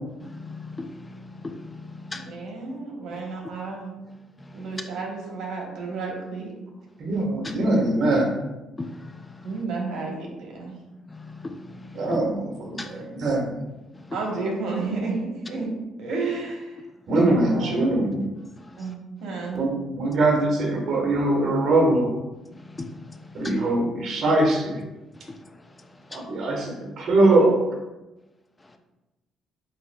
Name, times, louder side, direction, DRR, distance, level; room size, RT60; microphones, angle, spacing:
voice 1, 0.2-2.4 3.1-3.2 4.4-4.8 7.4-7.6 8.8-9.6 11.1-12.2 12.8-13.1 13.9-14.2 18.6-18.9 22.5-23.5 25.1-26.3 28.6-28.8, left 2 dB, 20° left, 0.4 m, -39 dB
voice 2, 2.1-3.9 4.5-6.5 9.4-10.8 14.1-15.7 16.0-16.8 17.3-18.1 18.8-19.6, right 3 dB, 75° right, 1.1 m, -32 dB
voice 3, 7.0-8.3 11.9-13.6 17.1-18.3 19.5-22.1 23.3-24.8 26.1-27.6, right 2 dB, 55° right, 1.4 m, -22 dB
8.0 x 2.7 x 2.3 m
cardioid pair, 100°, 0 cm